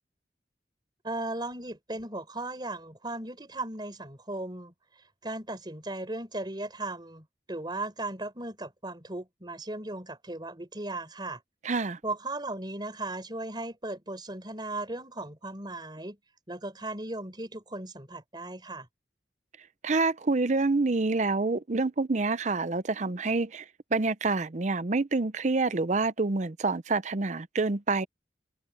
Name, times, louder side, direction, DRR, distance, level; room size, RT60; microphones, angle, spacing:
voice 1, 1.0-4.7 5.2-11.4 12.0-16.2 16.5-18.9, right 2 dB, 25° right, 4.5 m, -37 dB
voice 2, 11.6-12.0 19.8-23.6 23.9-28.1, right 3 dB, 40° right, 0.7 m, -27 dB
head